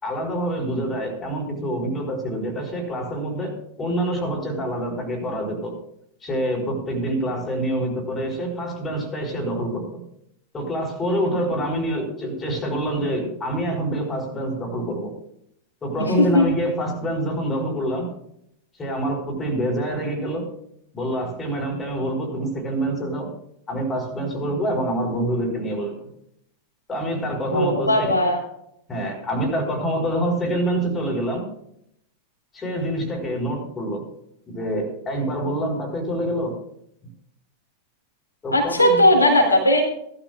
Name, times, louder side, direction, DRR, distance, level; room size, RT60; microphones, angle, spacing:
voice 1, 0.0-5.8 6.2-10.0 10.5-15.1 15.8-18.1 18.8-20.5 20.9-23.3 23.7-26.0 26.9-28.2 28.9-31.5 32.5-34.0 34.5-36.6 38.4-39.0, right 1 dB, 20° left, 1 dB, 5.0 m, -26 dB
voice 2, 27.5-28.4 38.5-39.8, left 1 dB, 80° left, 0 dB, 3.8 m, -17 dB
18.5 x 13.0 x 2.4 m, 0.72 s
figure-of-eight pair, 90°, 0 cm